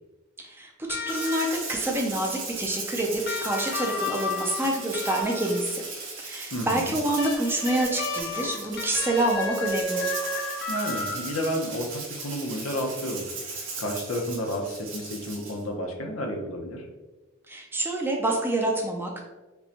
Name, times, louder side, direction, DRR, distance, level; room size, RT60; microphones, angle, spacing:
voice 1, 0.4-5.8 6.2-10.0 17.5-19.2, right 1 dB, 10° right, 0 dB, 0.4 m, -27 dB
sound 1, 0.9-1.8 3.2-5.8 7.2-11.6 13.0-13.1, left 3 dB, 50° left, 0.5 m, -33 dB
Rattle (instrument), 1.1-15.6, right 4 dB, 65° right, 1.3 m, -38 dB
voice 2, 6.5-7.0 10.7-13.2 13.5-16.9, equal, 90° left, 2 dB, 0.7 m, -31 dB
5.3 x 2.2 x 2.8 m, 1.1 s
head